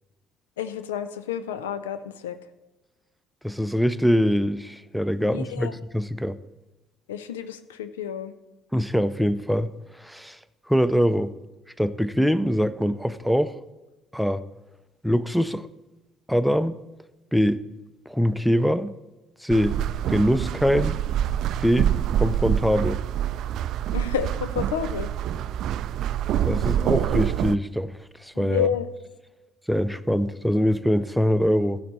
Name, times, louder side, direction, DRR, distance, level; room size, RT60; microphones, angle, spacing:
voice 1, 0.6-2.4 5.2-5.7 7.1-8.3 23.9-25.1 28.4-28.9, left 8 dB, 80° left, 12 dB, 0.5 m, -30 dB
voice 2, 3.4-6.4 8.7-10.4 10.7-11.3 11.8-13.6 14.1-14.4 15.0-15.7 16.3-16.8 17.3-17.6 18.1-18.9 19.4-19.8 20.1-21.0 21.6-23.0 26.5-27.9 28.2-28.7 29.7-31.8, equal, ahead, 16 dB, 0.6 m, -23 dB
sound 1, 19.5-27.6, right 10 dB, 60° right, 0.3 m, -26 dB
15.5 x 7.5 x 4.1 m, 1.1 s
figure-of-eight pair, 50°, 0 cm